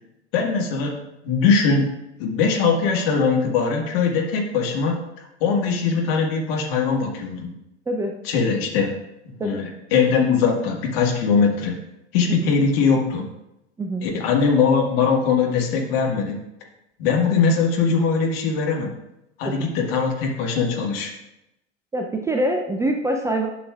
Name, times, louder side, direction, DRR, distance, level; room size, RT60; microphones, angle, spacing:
voice 1, 0.3-1.9 2.2-7.5 8.2-9.0 9.4-11.8 12.1-13.3 14.0-16.4 17.0-19.0 19.4-21.1, left 5 dB, 55° left, 1 dB, 1.6 m, -21 dB
voice 2, 21.9-23.5, right 1 dB, 10° right, 3 dB, 0.4 m, -24 dB
11.5 x 6.7 x 2.4 m, 0.89 s
figure-of-eight pair, 85°, 35 cm